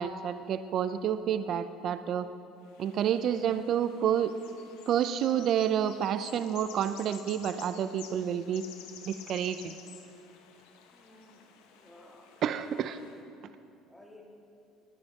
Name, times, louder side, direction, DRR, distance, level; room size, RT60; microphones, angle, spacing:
voice 1, 0.0-2.3 2.8-4.3 4.9-8.6 9.0-9.7 12.4-13.0, right 9 dB, 50° right, 11 dB, 0.4 m, -29 dB
sound 1, 2.6-13.2, left 8 dB, 90° left, 1.1 m, -52 dB
voice 2, 10.9-12.6 12.9-13.1 13.9-14.3, left 1 dB, 5° left, -1 dB, 2.0 m, -56 dB
19.5 x 9.7 x 3.6 m, 2.6 s
cardioid pair, 115°, 0 cm